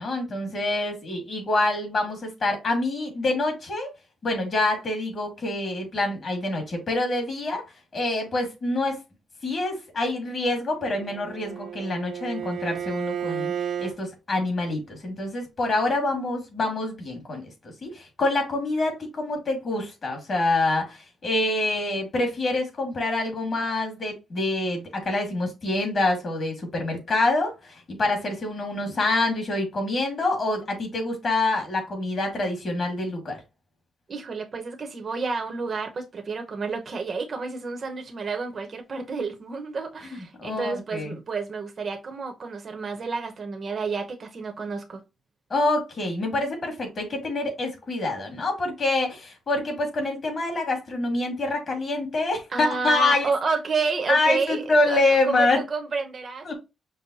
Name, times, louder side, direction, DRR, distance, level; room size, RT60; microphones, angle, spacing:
voice 1, 0.0-3.9 4.2-7.6 7.9-9.0 9.4-13.5 13.8-17.4 17.8-33.4 40.1-41.1 45.5-53.3 54.1-55.6 56.4-56.5, left 2 dB, 40° left, 2.1 m, -26 dB
Bowed string instrument, 10.8-14.0, right 8 dB, 70° right, 0.6 m, -32 dB
voice 2, 34.1-45.0 52.5-56.5, right 4 dB, 40° right, 0.9 m, -30 dB
5.5 x 2.1 x 4.1 m
cardioid pair, 130°, 0 cm